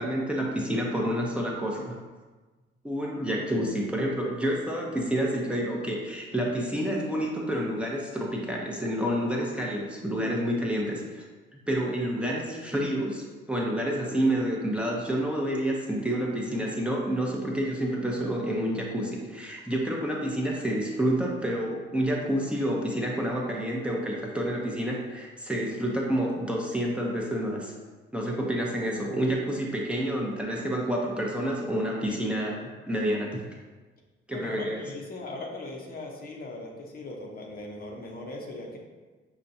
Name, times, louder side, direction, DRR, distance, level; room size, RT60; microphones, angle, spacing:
voice 1, 0.0-2.0 2.8-11.2 11.7-27.7 28.1-33.5 34.3-34.8, right 1 dB, 5° right, -3 dB, 0.6 m, -29 dB
voice 2, 34.3-38.8, left 2 dB, 50° left, -1 dB, 0.7 m, -39 dB
5.7 x 2.2 x 2.6 m, 1.3 s
cardioid pair, 90°, 20 cm